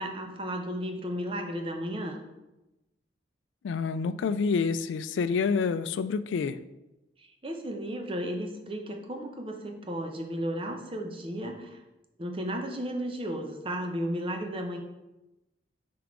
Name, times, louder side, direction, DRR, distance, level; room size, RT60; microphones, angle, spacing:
voice 1, 0.0-2.2 7.2-11.8 12.2-14.8, equal, 30° right, 3 dB, 0.7 m, -34 dB
voice 2, 3.6-6.6, left 5 dB, 80° left, 13 dB, 0.3 m, -28 dB
5.8 x 4.8 x 3.6 m, 0.98 s
head